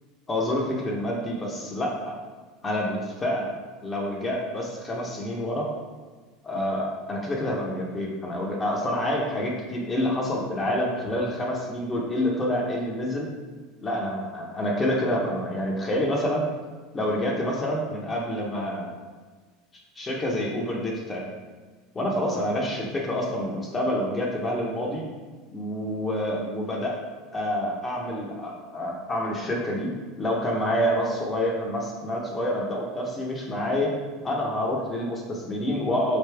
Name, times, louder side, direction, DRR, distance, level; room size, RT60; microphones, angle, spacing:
voice 1, 0.3-2.2 2.6-3.5 3.8-5.7 6.4-13.3 13.8-16.5 16.9-18.9 20.0-21.3 21.9-25.0 25.5-27.0 27.3-29.9 30.2-33.9 34.2-36.2, left 1 dB, 20° left, -2 dB, 0.7 m, -27 dB
4.0 x 3.4 x 3.3 m, 1.4 s
supercardioid pair, 115°, 0 cm